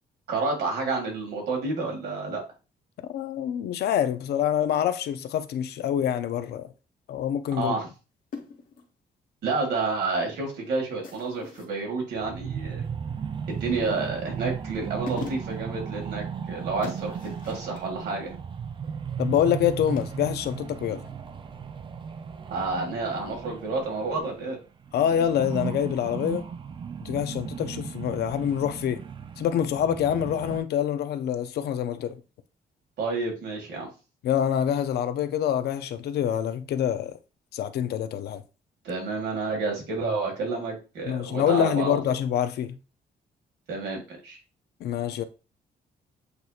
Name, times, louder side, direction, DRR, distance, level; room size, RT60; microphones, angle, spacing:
voice 1, 0.3-2.4 7.6-7.9 9.4-12.8 13.5-18.3 22.5-24.6 33.0-33.9 38.8-42.2 43.7-44.4, right 3 dB, 85° right, 2.0 m, -30 dB
voice 2, 3.1-6.7 7.1-7.7 19.2-21.0 24.9-26.4 27.0-29.0 29.4-32.2 34.2-37.2 37.5-38.4 41.1-42.8 44.8-45.2, left 9 dB, 75° left, 0.5 m, -26 dB
sound 1, 8.3-8.9 11.0-11.8 13.6-14.2 14.8-14.9 15.1-15.7 16.8-17.8 19.9-20.1, left 5 dB, 55° left, 1.1 m, -42 dB
sound 2, 12.2-24.6 24.8-30.6, right 7 dB, 30° right, 0.4 m, -36 dB
8.0 x 2.8 x 2.4 m
cardioid pair, 135°, 17 cm